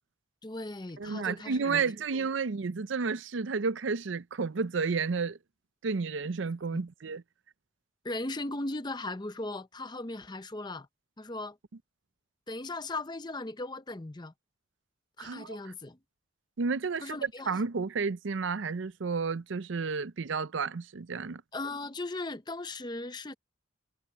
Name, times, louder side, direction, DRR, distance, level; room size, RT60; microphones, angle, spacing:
voice 1, 0.4-1.8 2.1-2.3 6.7-6.8 8.0-10.9 11.2-11.6 12.5-14.3 15.2-16.0 17.0-17.5 21.5-23.3, left 2 dB, 20° left, 0.7 m, -38 dB
voice 2, 1.0-5.4 5.8-7.2 15.2-15.6 16.6-21.4, right 4 dB, 75° right, 0.6 m, -31 dB
head